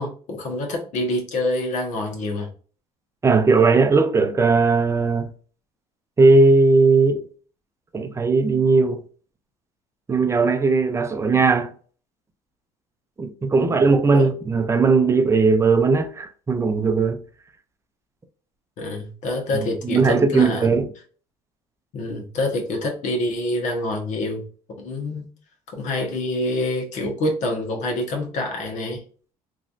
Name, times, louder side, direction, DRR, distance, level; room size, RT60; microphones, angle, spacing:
voice 1, 0.0-2.5 13.6-13.8 14.1-14.3 18.8-20.8 21.9-24.4 24.8-25.3 25.7-29.0, left 1 dB, 65° left, 1.1 m, -26 dB
voice 2, 3.2-5.3 6.2-7.2 7.9-9.0 10.1-11.7 13.2-17.2 19.8-20.9, right 4 dB, 20° right, 0.6 m, -18 dB
3.1 x 2.6 x 2.5 m
supercardioid pair, 95°, 13 cm